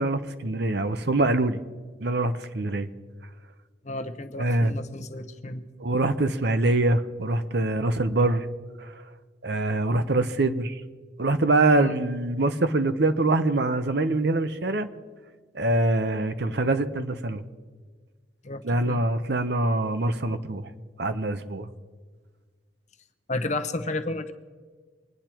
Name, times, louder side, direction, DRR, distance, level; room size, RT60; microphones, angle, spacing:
voice 1, 0.0-1.6 2.0-2.9 4.4-4.7 5.8-8.5 8.8-8.9 9.4-10.8 11.2-14.9 15.5-17.4 18.6-20.7 21.0-21.7, right 2 dB, 60° right, 11 dB, 0.9 m, -24 dB
voice 2, 3.8-5.6 11.8-12.0 18.4-19.0 23.3-24.3, left 2 dB, 40° left, 8 dB, 0.9 m, -32 dB
25.0 x 10.0 x 4.5 m, 1.5 s
head